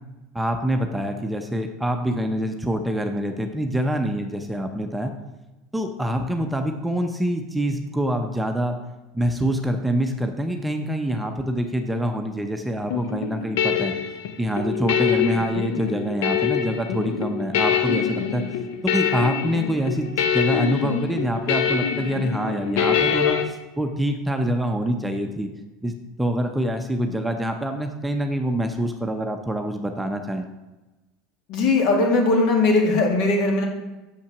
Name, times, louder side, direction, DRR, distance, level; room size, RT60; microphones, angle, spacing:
voice 1, 0.3-5.1 5.7-8.8 9.1-13.9 14.4-18.4 18.8-25.5 25.8-30.5, equal, 5° right, 4 dB, 0.7 m, -25 dB
sound 1, 12.9-23.4, left 8 dB, 80° left, 0.9 m, -24 dB
voice 2, 31.5-33.7, left 3 dB, 60° left, 1 dB, 2.1 m, -19 dB
6.7 x 5.8 x 5.9 m, 1.1 s
supercardioid pair, 115°, 0 cm